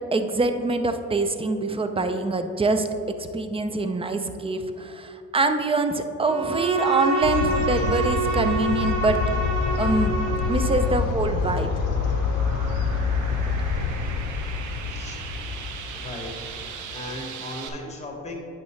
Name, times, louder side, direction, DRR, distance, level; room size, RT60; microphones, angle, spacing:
voice 1, 0.1-2.9 3.3-9.2 9.8-10.1 10.5-11.7, right 2 dB, 20° right, 8 dB, 0.5 m, -24 dB
Bowed string instrument, 6.2-11.1, right 3 dB, 60° right, 1.4 m, -27 dB
sound 1, 7.2-17.0, left 5 dB, 90° left, 0.5 m, -27 dB
sound 2, 10.8-17.7, right 6 dB, 75° right, 0.7 m, -39 dB
voice 2, 14.9-15.2 15.9-16.3 16.7-18.4, left 1 dB, 20° left, 1 dB, 1.6 m, -37 dB
9.0 x 5.8 x 3.2 m, 2.5 s
cardioid pair, 90°, 30 cm